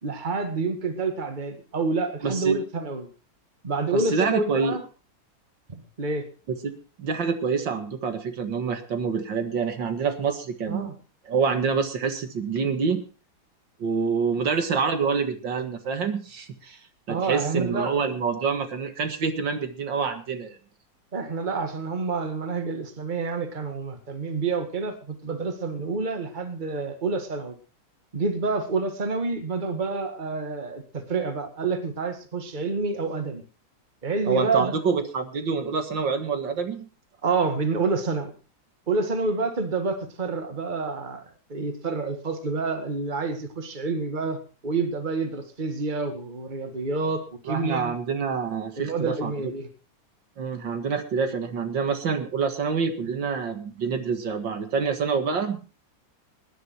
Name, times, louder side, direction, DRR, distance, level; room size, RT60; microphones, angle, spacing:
voice 1, 0.0-3.1 3.6-4.8 5.7-6.2 10.7-10.9 17.1-17.9 21.1-27.5 28.1-33.4 34.0-34.7 37.2-38.3 38.9-47.9 48.8-49.7, right 4 dB, 25° right, 7 dB, 1.8 m, -28 dB
voice 2, 2.2-2.6 3.9-4.8 6.6-11.0 11.3-13.0 13.8-16.8 17.1-20.6 34.3-36.9 47.5-49.3 50.4-55.7, right 5 dB, 75° right, 7 dB, 2.5 m, -27 dB
20.0 x 10.5 x 4.5 m, 0.35 s
omnidirectional pair, 2.0 m